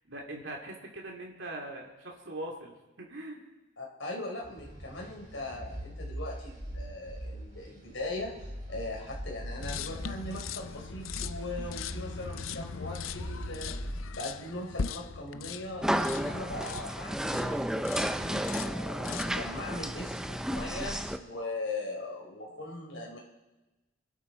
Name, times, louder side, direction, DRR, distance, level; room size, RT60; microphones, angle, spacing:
voice 1, 0.1-3.5, right 1 dB, 65° right, 0 dB, 2.6 m, -41 dB
voice 2, 3.8-13.7 14.1-17.6 18.0-23.2, left 2 dB, 70° left, -2 dB, 4.1 m, -40 dB
sound 1, 4.4-13.9, equal, 40° right, 5.3 m, -42 dB
sound 2, 9.6-17.5 17.8-18.2 18.4-19.4, left 6 dB, 90° left, 0.6 m, -40 dB
sound 3, 15.8-21.2, equal, 5° right, 0.5 m, -32 dB
25.5 x 11.5 x 4.4 m, 1.1 s
head